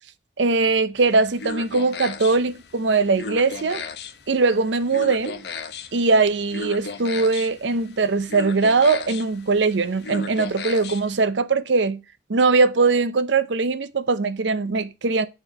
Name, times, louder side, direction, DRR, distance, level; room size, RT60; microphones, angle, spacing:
voice 1, 0.4-3.8 4.3-5.4 5.9-12.0 12.3-15.3, right 4 dB, 90° right, 0.7 m, -21 dB
sound 1, 1.0-11.2, left 4 dB, 65° left, 0.9 m, -36 dB
8.8 x 4.4 x 4.8 m
head